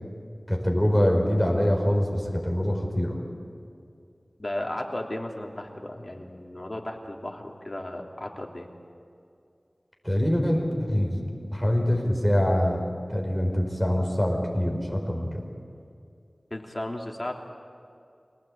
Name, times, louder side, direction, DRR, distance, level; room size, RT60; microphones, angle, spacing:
voice 1, 0.5-3.2 10.0-15.5, equal, ahead, 1 dB, 5.0 m, -24 dB
voice 2, 4.4-8.7 16.5-17.3, left 1 dB, 35° left, 1 dB, 3.2 m, -35 dB
26.0 x 18.5 x 8.8 m, 2.4 s
wide cardioid pair, 45°, 0 cm